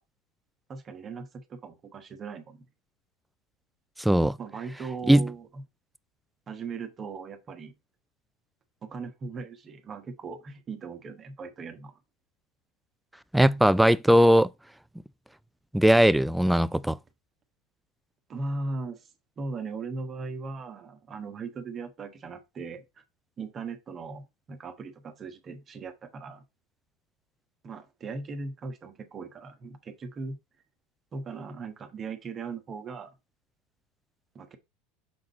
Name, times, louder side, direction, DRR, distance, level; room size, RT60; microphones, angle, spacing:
voice 1, 0.7-2.7 4.4-5.6 6.5-7.7 8.8-11.9 18.3-19.1 19.4-22.8 23.4-26.4 27.6-30.4 31.1-33.1 34.3-34.6, right 4 dB, 30° right, 1.3 m, -38 dB
voice 2, 4.0-4.4 5.1-5.3 13.3-14.5 15.7-17.0, equal, 5° right, 0.3 m, -19 dB
6.4 x 3.9 x 4.0 m
figure-of-eight pair, 75°, 0 cm